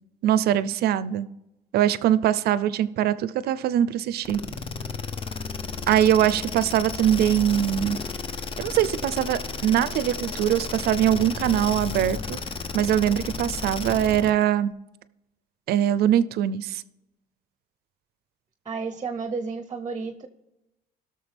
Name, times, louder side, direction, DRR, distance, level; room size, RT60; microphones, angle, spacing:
voice 1, 0.2-1.3 1.7-4.4 5.9-8.0 8.6-12.4 12.7-14.7 15.7-16.8, right 11 dB, 70° right, 16 dB, 0.5 m, -22 dB
sound 1, 4.2-14.4, left 4 dB, 30° left, 0.7 m, -33 dB
voice 2, 18.7-20.3, right 4 dB, 25° right, 10 dB, 0.7 m, -31 dB
17.5 x 6.6 x 3.4 m, 0.94 s
cardioid pair, 110°, 17 cm